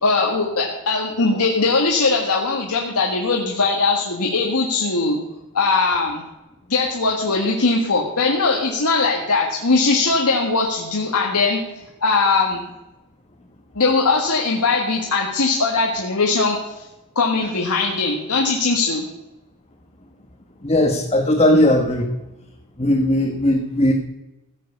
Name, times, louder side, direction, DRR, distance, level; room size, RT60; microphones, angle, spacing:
voice 1, 0.0-5.2 5.5-6.2 6.7-11.6 12.0-12.7 13.8-16.8 17.2-19.1, left 3 dB, 90° left, -1 dB, 1.7 m, -20 dB
voice 2, 20.6-22.1 22.8-23.9, left 1 dB, 25° left, 1 dB, 1.2 m, -17 dB
16.0 x 7.7 x 6.8 m, 0.99 s
head